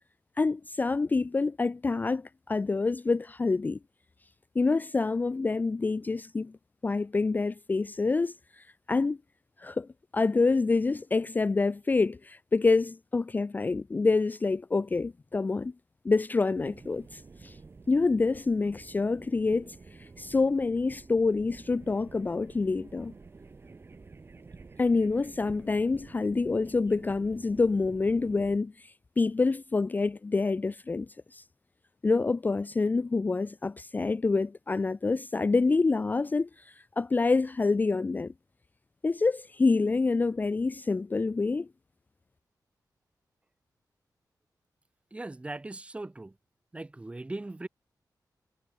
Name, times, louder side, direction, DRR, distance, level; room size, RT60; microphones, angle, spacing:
voice 1, 0.4-3.8 4.6-6.5 6.8-9.2 9.6-9.9 10.1-15.7 16.0-17.6 17.9-23.1 24.8-31.4 32.0-38.3 39.0-41.7, left 3 dB, 25° left, 0.4 m, -27 dB
sound 1, 16.6-28.6, right 4 dB, 35° right, 2.0 m, -50 dB
voice 2, 45.1-46.4 46.7-47.7, right 2 dB, 15° right, 1.4 m, -39 dB
wide cardioid pair, 155°, 7 cm